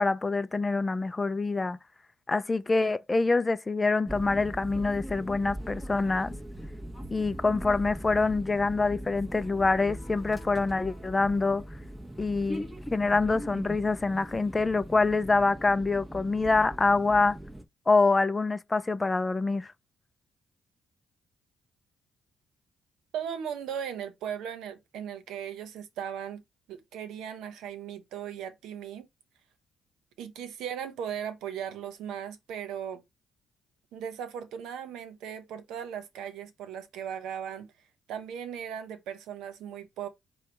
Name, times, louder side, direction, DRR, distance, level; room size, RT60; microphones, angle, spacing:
voice 1, 0.0-1.8 2.3-6.3 7.1-11.6 12.2-12.6 12.9-17.4 17.9-19.7, left 3 dB, 20° left, 0.4 m, -25 dB
sound 1, 4.1-17.6, equal, 10° right, 1.0 m, -40 dB
voice 2, 23.1-26.4 26.7-29.1 30.2-33.0 33.9-37.7 38.1-40.1, right 8 dB, 85° right, 0.9 m, -37 dB
5.1 x 2.3 x 4.5 m
cardioid pair, 90°, 0 cm